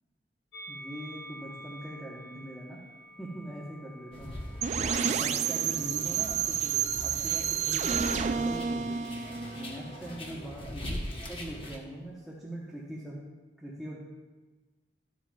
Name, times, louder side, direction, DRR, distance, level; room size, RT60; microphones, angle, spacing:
Musical instrument, 0.5-6.9 7.8-8.8, right 1 dB, 75° left, 0.8 m, -50 dB
voice 1, 0.7-2.8 3.2-4.3 5.0-9.0 9.5-13.2 13.6-14.0, right 1 dB, ahead, -7 dB, 1.0 m, -42 dB
sound 1, 4.1-11.8, left 1 dB, 30° left, 0.9 m, -41 dB
sound 2, 4.6-10.4, right 7 dB, 40° right, 0.3 m, -30 dB
13.0 x 7.5 x 2.3 m, 1.2 s
head